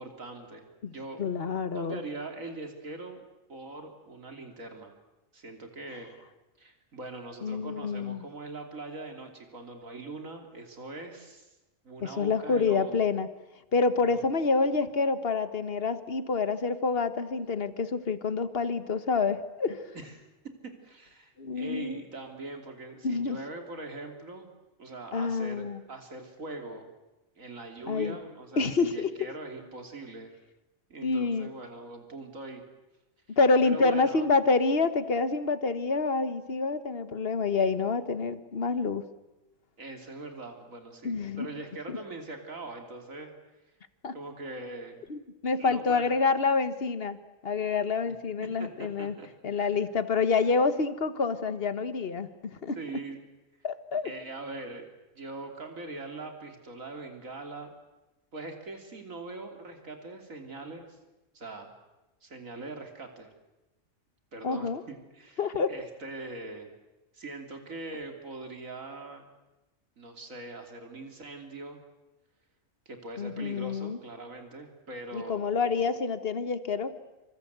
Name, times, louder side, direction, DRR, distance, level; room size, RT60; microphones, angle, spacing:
voice 1, 0.0-1.2 1.7-3.2 3.5-4.9 5.3-6.1 6.6-11.5 11.9-13.0 14.0-14.2 19.9-20.3 20.6-24.5 24.8-26.9 27.4-30.3 30.9-32.6 33.3-34.3 39.8-43.3 44.1-45.0 45.6-46.1 48.0-48.1 48.6-49.3 49.6-49.8 52.8-53.2 54.0-54.9 55.2-57.7 58.3-61.0 61.3-61.7 62.2-63.3 64.3-66.7 67.1-69.3 70.0-71.8 72.9-75.4, right 2 dB, 85° right, 4 dB, 3.5 m, -42 dB
voice 2, 1.2-2.0 7.4-8.2 12.0-13.3 13.7-19.8 21.4-22.0 23.0-23.4 25.1-25.8 27.9-28.2 28.6-29.1 31.0-31.5 33.4-39.0 41.0-41.5 41.9-42.0 44.0-44.1 45.1-47.2 47.4-49.2 49.4-52.8 53.6-54.1 64.4-64.8 65.4-65.7 73.2-74.0 75.1-76.9, left 4 dB, 50° left, 12 dB, 1.6 m, -27 dB
27.5 x 25.5 x 8.1 m, 1.0 s
omnidirectional pair, 1.4 m